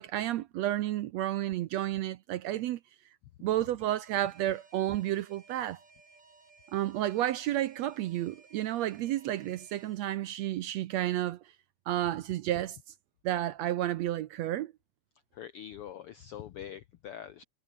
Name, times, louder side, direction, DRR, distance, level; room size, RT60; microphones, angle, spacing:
voice 1, 0.0-2.8 3.4-5.8 6.7-11.4 11.9-12.8 13.2-14.7, right 13 dB, 75° right, 1.7 m, -31 dB
Alarm, 3.8-10.0, right 3 dB, 55° right, 7.9 m, -59 dB
voice 2, 15.4-17.4, left 10 dB, 75° left, 1.3 m, -44 dB
omnidirectional pair, 3.6 m